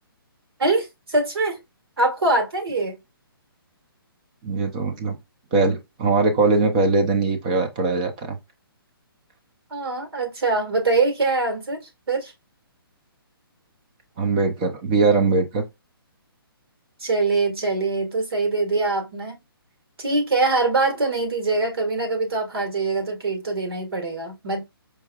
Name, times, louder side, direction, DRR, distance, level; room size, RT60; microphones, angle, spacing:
voice 1, 0.6-1.6 2.0-3.0 9.7-12.3 17.0-19.3 20.0-24.6, right 3 dB, 80° right, 1.8 m, -23 dB
voice 2, 4.4-5.2 5.5-8.4 14.2-15.6, right 3 dB, 20° right, 0.6 m, -21 dB
4.6 x 2.9 x 2.3 m
hypercardioid pair, 170°, 13 cm